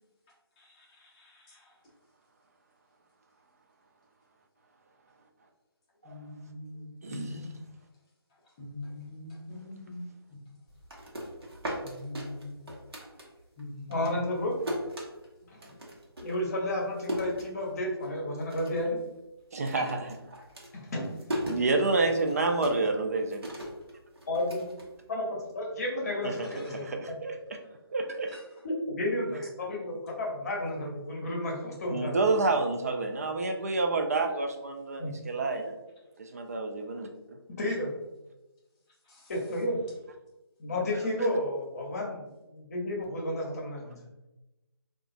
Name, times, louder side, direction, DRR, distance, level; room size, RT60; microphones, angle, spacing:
voice 1, 0.6-1.8 6.0-7.6 8.6-10.0 10.3-10.4 11.8-12.5 13.0-13.1 13.6-14.1 26.4-26.8 28.3-28.4 39.0-39.3, left 2 dB, 15° left, -5 dB, 0.6 m, -43 dB
voice 2, 7.0-7.4 19.5-20.1 21.5-23.5 26.2-27.6 27.9-28.4 31.9-35.7 36.2-37.4, right 3 dB, 40° right, 4 dB, 0.4 m, -29 dB
sound 1, 10.7-13.6 13.9-18.1 18.4-19.0 19.2-25.5, equal, 70° right, 1.0 m, -39 dB
voice 3, 13.9-14.6 15.5-15.6 16.2-19.0 19.8-19.9 20.7-21.1 24.3-24.7 25.1-27.2 28.6-32.2 35.0-35.1 37.5-37.9 39.3-39.8 40.6-44.0, left 1 dB, 40° left, -1 dB, 0.8 m, -32 dB
3.7 x 2.4 x 2.5 m, 1.0 s
figure-of-eight pair, 160°, 13 cm